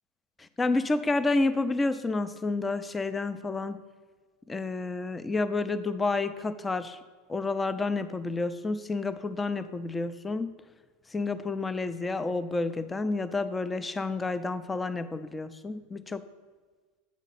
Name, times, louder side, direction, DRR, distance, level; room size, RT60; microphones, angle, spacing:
voice 1, 0.4-3.8 4.5-7.0 7.3-10.5 11.1-16.2, left 3 dB, 15° left, 12 dB, 0.4 m, -30 dB
8.2 x 5.2 x 4.1 m, 1.4 s
supercardioid pair, 110°, 0 cm